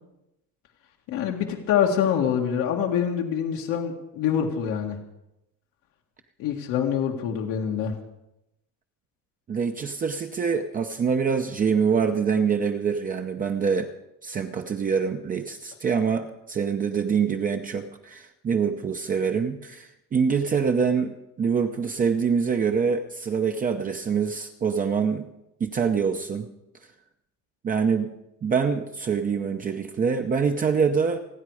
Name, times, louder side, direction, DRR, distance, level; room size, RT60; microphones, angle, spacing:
voice 1, 1.1-5.0 6.4-8.0, left 8 dB, 85° left, 0 dB, 2.0 m, -25 dB
voice 2, 9.5-13.9 14.2-25.3 25.6-26.5 27.6-31.2, right 6 dB, 25° right, 5 dB, 0.7 m, -25 dB
28.5 x 9.6 x 4.9 m, 0.88 s
cardioid pair, 155°, 33 cm